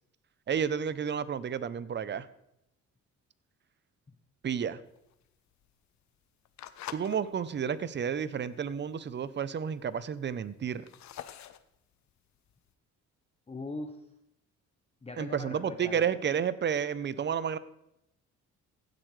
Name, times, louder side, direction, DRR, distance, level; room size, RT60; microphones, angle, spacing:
voice 1, 0.5-2.3 4.4-4.8 6.9-10.8 15.2-17.6, right 7 dB, 35° right, 16 dB, 0.7 m, -31 dB
sound 1, 4.9-7.2 7.7-8.0 8.5-8.6 8.8-8.9 9.1-9.6 10.1-12.7, left 11 dB, 65° left, 0.7 m, -46 dB
voice 2, 13.5-14.0 15.0-16.0, left 2 dB, 20° left, 4 dB, 0.9 m, -40 dB
15.5 x 7.9 x 3.3 m, 0.80 s
cardioid pair, 90°, 30 cm